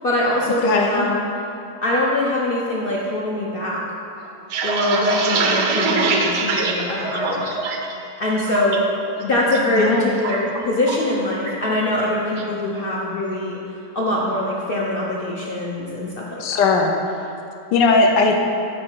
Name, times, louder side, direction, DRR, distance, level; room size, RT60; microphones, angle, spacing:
voice 1, 0.0-1.1 1.8-3.8 4.6-7.5 8.2-8.8 9.2-13.6 13.9-16.6, left 1 dB, 60° left, -4 dB, 0.6 m, -23 dB
voice 2, 0.6-1.1 9.8-10.2 16.4-16.9 17.7-18.5, left 4 dB, 85° left, 2 dB, 1.4 m, -18 dB
sound 1, 4.3-7.9 8.3-8.8 9.2-9.6 9.9-11.1 11.5-11.7 12.0-12.5, right 4 dB, 65° right, 0.7 m, -23 dB
7.4 x 4.7 x 4.5 m, 2.7 s
omnidirectional pair, 1.9 m